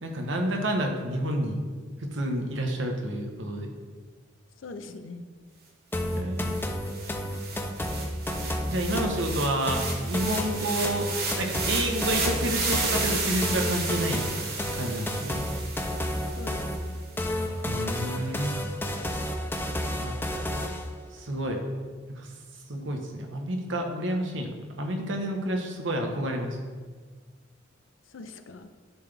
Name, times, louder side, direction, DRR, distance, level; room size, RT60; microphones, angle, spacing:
voice 1, 0.0-1.6 2.0-3.7 6.1-6.6 8.7-11.1 11.4-14.2 14.8-15.4 17.7-18.6 20.0-20.2 21.1-21.6 22.1-22.3 22.7-24.5 24.8-26.6, right 1 dB, 70° right, 3 dB, 1.0 m, -29 dB
voice 2, 4.6-5.3 16.4-17.0 28.0-28.7, left 3 dB, 90° left, 8 dB, 0.5 m, -42 dB
sound 1, 5.9-20.9, left 1 dB, 10° left, 0.5 m, -31 dB
sound 2, 6.1-6.2 6.5-16.8, right 3 dB, 55° right, 1.2 m, -33 dB
11.0 x 3.9 x 3.4 m, 1.5 s
head